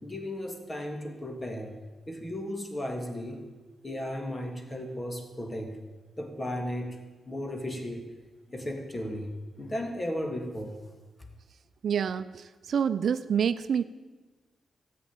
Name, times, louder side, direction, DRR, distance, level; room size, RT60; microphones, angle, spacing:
voice 1, 0.0-1.8 2.1-3.4 3.8-5.8 6.2-7.0 7.3-8.1 8.5-9.3 9.6-10.8, left 1 dB, 25° left, 4 dB, 2.9 m, -35 dB
voice 2, 11.8-13.8, right 7 dB, 70° right, 13 dB, 0.6 m, -27 dB
14.0 x 8.5 x 8.9 m, 1.2 s
cardioid pair, 60°, 0 cm